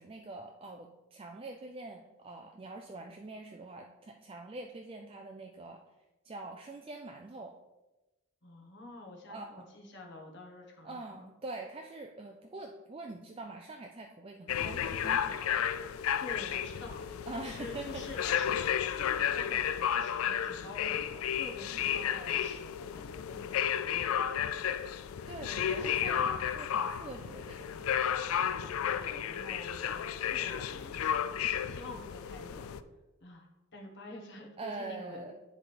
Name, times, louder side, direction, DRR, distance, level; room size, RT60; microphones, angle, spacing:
voice 1, 0.0-5.8 6.2-7.6 9.3-9.7 10.8-15.7 17.3-18.0 25.3-27.9 28.4-28.6 34.6-35.3, right 2 dB, 25° right, 2 dB, 0.4 m, -44 dB
voice 2, 8.4-11.3 16.2-24.8 25.7-26.0 27.0-27.2 28.6-31.4 31.6-32.6 33.2-33.5 33.7-35.3, left 2 dB, 55° left, 1 dB, 1.2 m, -48 dB
sound 1, 14.5-32.8, left 9 dB, 80° left, 0.4 m, -33 dB
9.7 x 3.4 x 4.2 m, 1.1 s
head